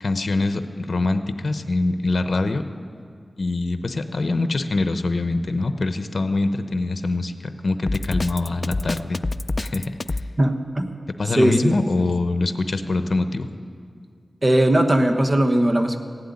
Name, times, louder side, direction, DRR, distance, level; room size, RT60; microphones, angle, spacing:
voice 1, 0.0-2.6 3.4-9.2 9.6-10.2 11.2-13.5, left 2 dB, 65° left, 9 dB, 0.8 m, -24 dB
Drum kit, 7.9-10.3, left 2 dB, 40° left, 0.3 m, -26 dB
voice 2, 10.4-10.9 11.4-11.8 14.4-16.0, right 1 dB, 35° right, 6 dB, 1.1 m, -19 dB
15.5 x 7.9 x 9.8 m, 2.2 s
wide cardioid pair, 60°, 0 cm